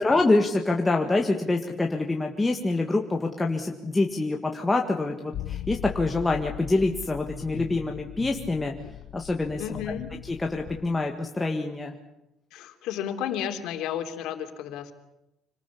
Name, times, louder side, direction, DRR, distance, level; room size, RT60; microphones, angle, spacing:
voice 1, 0.0-8.7 9.1-9.6 10.2-11.9, left 2 dB, 10° left, 2 dB, 1.8 m, -26 dB
sound 1, 5.3-10.9, left 12 dB, 60° left, 1.5 m, -39 dB
voice 2, 9.6-10.1 12.5-14.9, left 9 dB, 75° left, 5 dB, 3.4 m, -32 dB
26.0 x 20.0 x 8.5 m, 0.89 s
cardioid pair, 150°, 0 cm